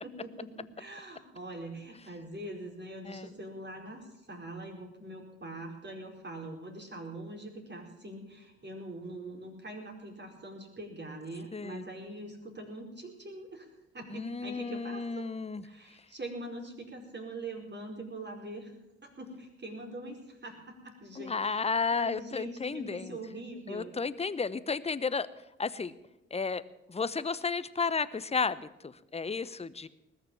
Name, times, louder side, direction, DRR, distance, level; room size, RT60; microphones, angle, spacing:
voice 1, 0.0-13.7 13.9-15.3 15.6-18.7 19.0-23.9, right 2 dB, 30° right, 1 dB, 4.8 m, -43 dB
voice 2, 11.5-11.8 14.1-15.6 21.2-23.2 23.7-25.3 25.6-25.9 26.3-26.6 26.9-29.9, left 5 dB, 20° left, 16 dB, 0.8 m, -33 dB
19.5 x 6.9 x 8.8 m, 0.95 s
hypercardioid pair, 50°, 34 cm